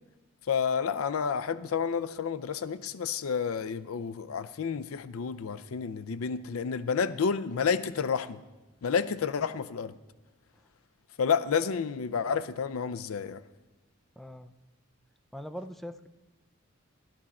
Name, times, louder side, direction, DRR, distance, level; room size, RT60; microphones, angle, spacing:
voice 1, 0.5-8.4 8.8-9.9 11.2-13.4, left 6 dB, 90° left, 0.5 m, -30 dB
voice 2, 14.2-14.5 15.3-16.1, equal, ahead, 0.4 m, -41 dB
12.0 x 11.5 x 4.2 m
head